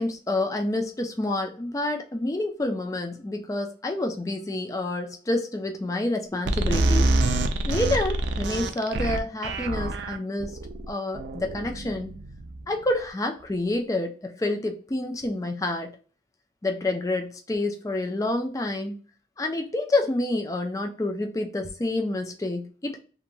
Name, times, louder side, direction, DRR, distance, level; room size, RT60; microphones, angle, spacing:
voice 1, 0.0-7.1 7.7-10.6 10.9-12.1 12.7-15.9 16.6-19.0 19.4-23.0, left 2 dB, 20° left, 4 dB, 0.3 m, -28 dB
sound 1, 6.5-12.9, right 2 dB, 75° right, 0.4 m, -26 dB
2.8 x 2.2 x 2.6 m, 0.38 s
head